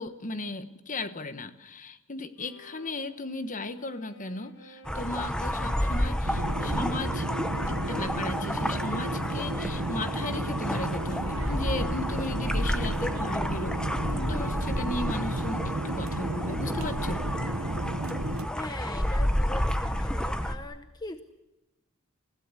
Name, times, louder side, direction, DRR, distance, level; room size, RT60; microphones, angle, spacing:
voice 1, 0.0-7.3 7.7-13.8 14.1-17.2, left 2 dB, 40° left, 11 dB, 1.3 m, -36 dB
Bowed string instrument, 2.4-14.2, left 2 dB, 60° left, 2.3 m, -54 dB
sound 1, 4.8-20.6, equal, 5° left, 1.1 m, -30 dB
sound 2, 6.2-18.5, right 2 dB, 85° right, 1.1 m, -33 dB
voice 2, 18.5-21.2, left 2 dB, 20° left, 9 dB, 0.8 m, -40 dB
29.0 x 16.5 x 8.3 m, 1.0 s
head